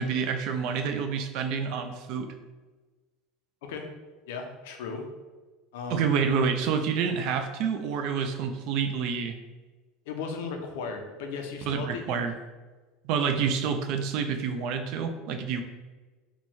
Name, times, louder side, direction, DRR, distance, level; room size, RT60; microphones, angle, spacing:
voice 1, 0.0-2.3 5.9-9.4 11.7-12.3 13.0-15.6, right 6 dB, 55° right, 6 dB, 0.3 m, -28 dB
voice 2, 4.3-5.1 5.7-6.1 10.1-12.2, left 5 dB, 85° left, 4 dB, 0.5 m, -36 dB
3.0 x 2.2 x 4.2 m, 1.3 s
cardioid pair, 165°, 0 cm